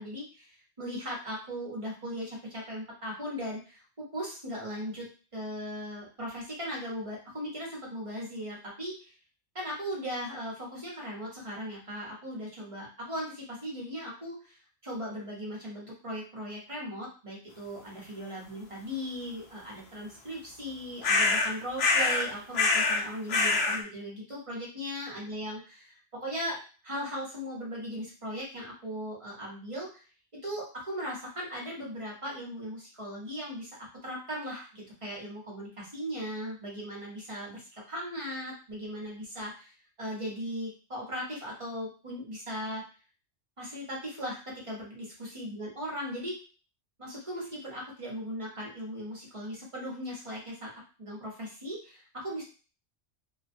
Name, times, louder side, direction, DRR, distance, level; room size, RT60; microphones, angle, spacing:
voice 1, 0.0-5.1 5.3-9.1 9.5-30.0 30.4-39.7 40.0-42.8 43.6-46.3 47.0-50.7 51.0-52.4, equal, 30° right, -4 dB, 0.8 m, -38 dB
sound 1, 21.0-21.5 21.8-22.3 22.5-23.0 23.3-23.8, left 3 dB, 65° left, 0.8 m, -25 dB
2.4 x 2.1 x 2.5 m, 0.36 s
omnidirectional pair, 1.2 m